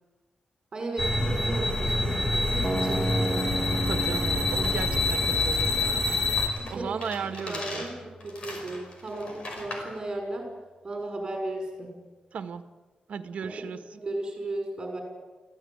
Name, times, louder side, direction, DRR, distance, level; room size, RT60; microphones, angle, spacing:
voice 1, 0.7-3.4 6.6-7.1 7.5-10.5 10.8-11.9 13.4-13.5 13.9-15.0, right 2 dB, 35° right, 2 dB, 5.9 m, -35 dB
sound 1, 1.0-6.5, left 2 dB, 20° left, 2.4 m, -26 dB
sound 2, 2.6-8.6, right 1 dB, ahead, 1.3 m, -35 dB
voice 2, 3.9-6.2 6.7-7.8 12.3-12.6 13.1-13.8, right 6 dB, 75° right, 9 dB, 1.6 m, -35 dB
sound 3, 4.6-10.0, left 2 dB, 50° left, 5.2 m, -41 dB
24.0 x 16.0 x 9.1 m, 1.3 s
wide cardioid pair, 170°, 2 cm